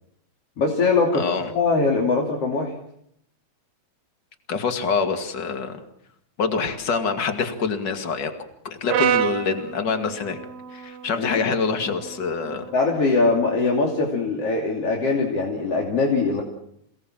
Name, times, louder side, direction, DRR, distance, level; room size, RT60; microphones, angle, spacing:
voice 1, 0.6-2.7 11.2-11.4 12.7-16.4, left 3 dB, 55° left, 0 dB, 3.8 m, -22 dB
voice 2, 1.1-1.5 4.5-5.8 6.4-8.3 8.6-10.4 10.7-12.7, left 5 dB, 40° left, 6 dB, 2.7 m, -25 dB
Brass instrument, 8.9-13.1, right 10 dB, 70° right, 2.3 m, -29 dB
28.0 x 19.0 x 7.5 m, 0.73 s
omnidirectional pair, 3.3 m